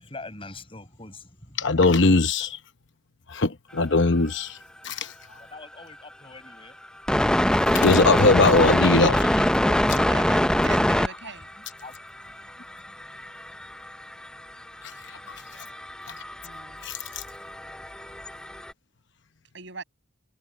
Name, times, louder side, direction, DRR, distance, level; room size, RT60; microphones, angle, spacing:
voice 1, 0.0-1.8 5.5-6.8 11.1-11.9, left 3 dB, 25° left, 7.7 m, -44 dB
voice 2, 1.6-2.6 3.3-4.6 4.8-5.0 7.7-9.2 16.8-16.9, left 3 dB, 65° left, 0.9 m, -20 dB
sound 1, 5.8-5.9 6.8-11.2 11.5-11.6 12.0-18.7, left 1 dB, 5° left, 0.5 m, -24 dB
voice 3, 9.6-11.5 16.4-16.9 19.5-19.8, right 4 dB, 65° right, 6.3 m, -41 dB
head